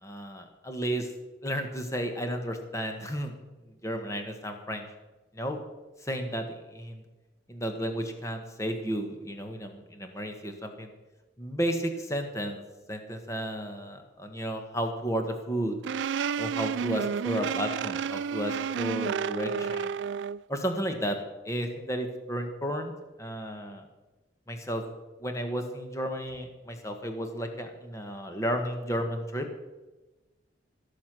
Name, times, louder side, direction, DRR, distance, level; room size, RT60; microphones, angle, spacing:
voice 1, 0.0-1.1 1.4-3.4 3.7-4.9 5.3-5.6 6.0-7.0 7.5-10.9 11.4-12.6 12.9-15.8 16.4-19.9 20.5-21.2 21.4-22.9 23.2-23.8 24.5-24.8 25.2-29.5, equal, 15° left, 5 dB, 1.3 m, -33 dB
sound 1, 15.8-20.4, right 7 dB, 75° right, 0.3 m, -31 dB
17.0 x 7.2 x 6.2 m, 1.1 s
head